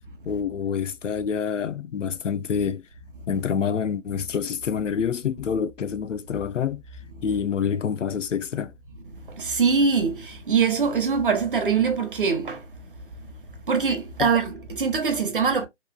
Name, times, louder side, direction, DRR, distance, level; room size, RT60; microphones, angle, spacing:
voice 1, 0.3-2.8 3.3-6.8 7.2-8.7 14.2-14.3, left 7 dB, 90° left, 0.6 m, -27 dB
voice 2, 9.4-12.6 13.7-15.7, right 5 dB, 45° right, 0.8 m, -23 dB
3.0 x 2.7 x 2.2 m
figure-of-eight pair, 165°, 36 cm